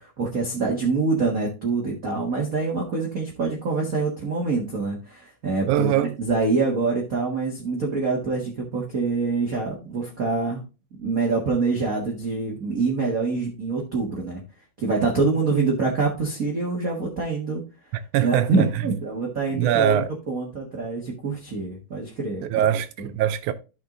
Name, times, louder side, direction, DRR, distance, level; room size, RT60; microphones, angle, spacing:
voice 1, 0.0-5.9 6.2-10.6 11.0-14.4 14.8-17.6 18.2-20.0 20.3-22.7 23.0-23.1, right 3 dB, 40° right, 1.3 m, -25 dB
voice 2, 5.7-6.1 18.1-19.0 19.5-20.1 22.4-23.5, right 11 dB, 85° right, 2.0 m, -22 dB
13.0 x 5.3 x 2.5 m
omnidirectional pair, 3.5 m